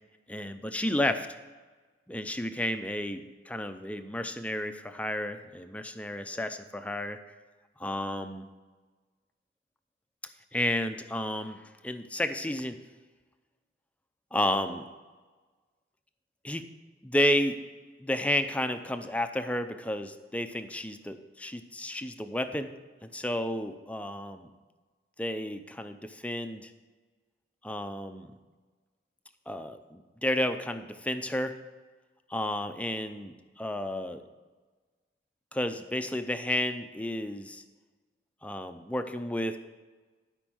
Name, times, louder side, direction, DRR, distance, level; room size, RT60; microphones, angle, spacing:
voice 1, 0.3-1.3 2.1-7.2 7.8-8.4 10.5-12.8 14.3-14.8 16.4-16.6 17.0-17.6 18.0-22.7 23.0-24.5 25.2-26.7 27.6-28.3 29.5-31.5 32.3-34.2 35.5-37.6 38.4-39.6, left 1 dB, 5° left, 8 dB, 0.5 m, -31 dB
12.5 x 5.2 x 6.2 m, 1.3 s
head